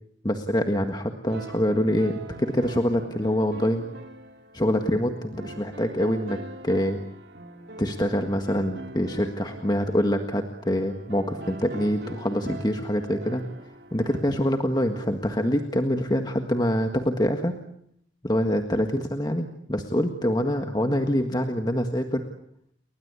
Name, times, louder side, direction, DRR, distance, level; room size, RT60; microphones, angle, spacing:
voice 1, 0.2-3.9 4.5-6.4 6.6-7.0 7.8-13.5 13.9-17.5 18.2-22.2, equal, 20° left, 5 dB, 1.7 m, -25 dB
sound 1, 1.3-15.8, right 2 dB, 55° right, 3.1 m, -43 dB
30.0 x 22.5 x 8.3 m, 0.73 s
head